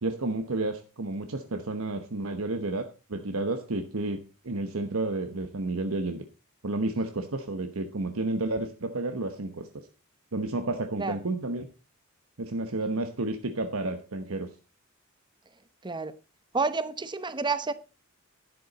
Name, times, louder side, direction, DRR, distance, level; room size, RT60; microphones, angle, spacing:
voice 1, 0.0-6.2 6.6-9.7 10.3-11.7 12.4-14.5, right 2 dB, 80° right, 1.0 m, -31 dB
voice 2, 15.8-16.1 16.5-17.7, right 4 dB, 20° right, 0.8 m, -29 dB
12.0 x 10.0 x 4.1 m
head